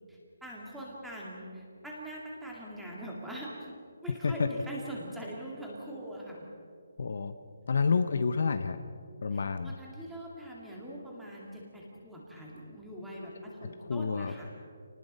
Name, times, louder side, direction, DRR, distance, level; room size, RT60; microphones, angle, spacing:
voice 1, 0.1-3.8 4.0-6.5 9.3-14.5, right 1 dB, ahead, -4 dB, 2.3 m, -43 dB
voice 2, 7.0-7.3 7.7-8.8 9.2-9.7 13.8-14.3, left 5 dB, 45° left, 9 dB, 0.8 m, -29 dB
28.0 x 19.5 x 5.5 m, 2.3 s
hypercardioid pair, 180°, 0 cm